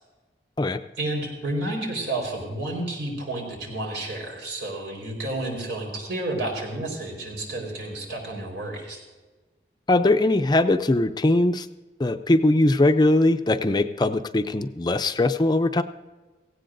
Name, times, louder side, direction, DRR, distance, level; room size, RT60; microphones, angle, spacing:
voice 1, 1.0-9.0, right 1 dB, 90° right, 0 dB, 4.4 m, -31 dB
voice 2, 9.9-11.7 12.0-15.8, left 2 dB, 25° left, 9 dB, 0.5 m, -20 dB
18.0 x 16.0 x 2.6 m, 1.3 s
head